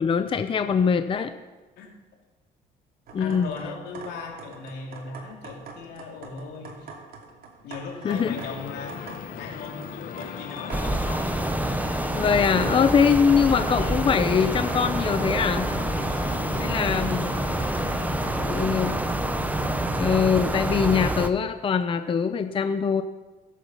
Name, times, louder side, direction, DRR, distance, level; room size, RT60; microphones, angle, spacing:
voice 1, 0.0-1.3 3.1-3.5 8.0-8.4 12.1-15.7 16.6-17.4 18.5-18.9 19.9-23.0, left 6 dB, 30° left, 9 dB, 0.6 m, -22 dB
sound 1, 3.1-21.2, right 4 dB, 60° right, 2.7 m, -45 dB
voice 2, 3.2-6.9 7.6-11.2 16.5-17.3 18.0-19.0, left 4 dB, 80° left, 0 dB, 3.1 m, -38 dB
sound 2, 8.1-19.9, left 8 dB, 55° left, 1.1 m, -38 dB
sound 3, 10.7-21.3, right 1 dB, 10° right, 0.8 m, -27 dB
17.0 x 8.5 x 5.7 m, 1.2 s
cardioid pair, 110°, 17 cm